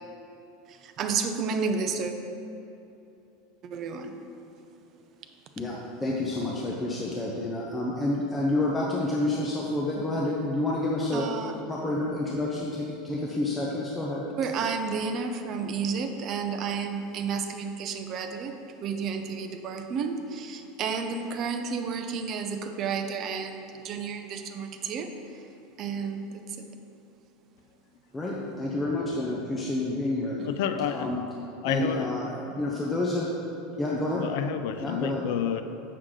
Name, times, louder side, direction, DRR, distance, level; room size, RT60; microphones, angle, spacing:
voice 1, 0.7-2.1 3.6-4.2 11.1-11.6 14.4-25.4 25.8-26.7 30.4-30.5, right 5 dB, 35° right, 6 dB, 0.5 m, -31 dB
voice 2, 5.6-11.3 11.7-14.3 28.1-30.4 30.9-31.2 31.6-33.3 33.8-34.3 34.8-35.3, left 2 dB, 10° left, -4 dB, 0.6 m, -29 dB
voice 3, 30.4-31.1 31.6-32.2 34.2-35.6, left 8 dB, 60° left, 9 dB, 0.4 m, -29 dB
7.6 x 6.4 x 3.7 m, 2.8 s
supercardioid pair, 160°, 0 cm